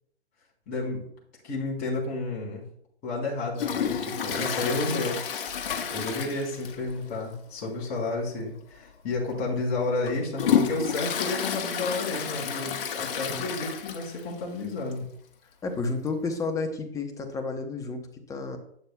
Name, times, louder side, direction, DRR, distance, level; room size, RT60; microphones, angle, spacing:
voice 1, 0.7-1.0 1.4-2.6 3.0-5.2 5.9-15.0, left 2 dB, 25° left, -3 dB, 3.7 m, -31 dB
Toilet flush, 3.6-7.0 7.3-7.4 7.8-7.9 8.7-8.9 9.4-14.3 14.6-14.7 14.9-15.0 16.1-16.2, left 7 dB, 55° left, 1.5 m, -30 dB
voice 2, 4.4-4.8 13.3-13.4 15.6-18.6, left 3 dB, 10° left, 4 dB, 0.9 m, -31 dB
11.5 x 8.5 x 2.3 m, 0.69 s
hypercardioid pair, 140°, 34 cm